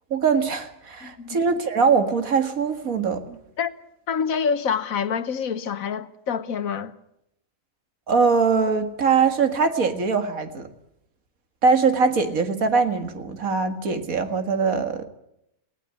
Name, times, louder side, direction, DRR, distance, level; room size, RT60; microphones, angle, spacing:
voice 1, 0.1-3.4 8.1-10.7 11.6-15.1, right 5 dB, 90° right, 2.3 m, -22 dB
voice 2, 1.0-1.4 3.6-3.7 4.1-6.9, left 6 dB, 80° left, 1.5 m, -26 dB
19.0 x 17.5 x 9.8 m
omnidirectional pair, 1.4 m